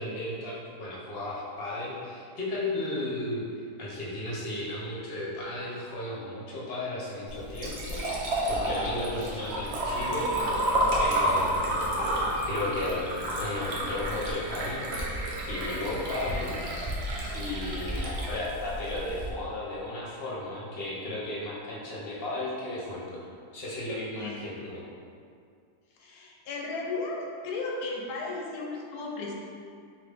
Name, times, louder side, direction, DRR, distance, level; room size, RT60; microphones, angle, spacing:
voice 1, 0.0-10.5 11.0-11.8 12.4-14.9 15.4-16.6 17.3-23.2 23.5-24.8, left 1 dB, 45° left, -6 dB, 0.9 m, -34 dB
Liquid, 7.3-19.3, right 1 dB, 60° right, 0.7 m, -30 dB
voice 2, 17.4-17.9 24.1-24.5 26.0-29.3, left 3 dB, 75° left, -1 dB, 1.1 m, -35 dB
3.9 x 3.0 x 3.4 m, 2.3 s
omnidirectional pair, 1.7 m